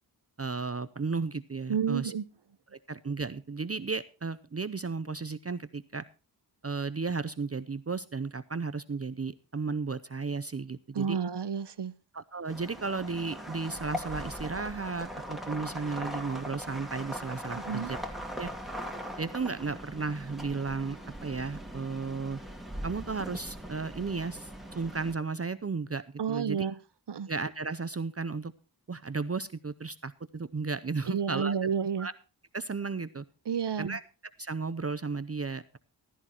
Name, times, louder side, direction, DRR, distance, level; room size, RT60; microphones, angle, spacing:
voice 1, 0.4-2.1 2.7-6.0 6.6-11.2 12.1-18.0 18.4-18.5 19.2-22.4 22.8-26.7 27.3-28.5 28.9-31.7 32.0-32.1 32.5-33.2 33.8-34.0 34.4-35.8, right 4 dB, 35° right, 0.6 m, -34 dB
voice 2, 1.7-2.2 10.9-11.9 17.6-17.9 26.2-26.7 27.1-27.3 31.1-32.1 33.5-34.0, right 7 dB, 70° right, 0.8 m, -30 dB
sound 1, 12.5-25.1, equal, ahead, 2.3 m, -40 dB
15.0 x 13.5 x 2.9 m
wide cardioid pair, 80°, 43 cm